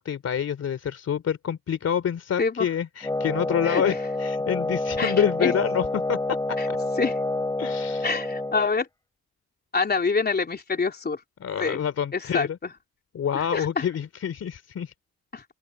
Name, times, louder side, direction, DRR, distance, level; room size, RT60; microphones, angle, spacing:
voice 1, 0.0-6.4 6.7-6.8 7.6-8.2 11.4-12.6 13.1-14.9, left 8 dB, 55° left, 3.1 m, -27 dB
voice 2, 2.4-2.7 3.6-4.0 5.0-5.1 5.4-5.5 6.6-6.7 7.0-7.1 8.0-8.9 9.7-11.2 11.6-11.8 12.1-12.5 13.3-13.8 15.3-15.4, left 4 dB, 30° left, 3.4 m, -26 dB
Wind instrument woodwind instrument, 3.0-8.7, left 2 dB, 10° left, 3.8 m, -28 dB
open air
cardioid pair, 90°, 30 cm